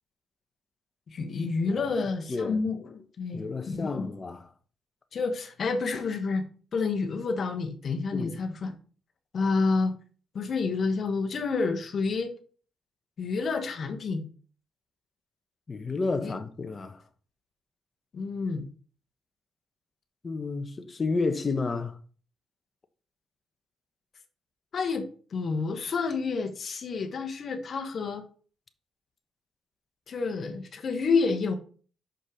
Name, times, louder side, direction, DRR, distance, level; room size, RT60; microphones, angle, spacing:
voice 1, 1.1-4.1 5.1-6.4 6.7-8.7 9.3-9.9 10.3-12.3 13.2-14.3 16.2-16.4 18.1-18.6 24.7-28.2 30.1-31.5, left 4 dB, 55° left, 1.2 m, -29 dB
voice 2, 2.3-2.6 3.3-4.5 8.1-8.4 15.7-17.0 20.2-22.0, left 3 dB, 35° left, 1.1 m, -31 dB
6.3 x 5.4 x 5.1 m
cardioid pair, 80°, 0 cm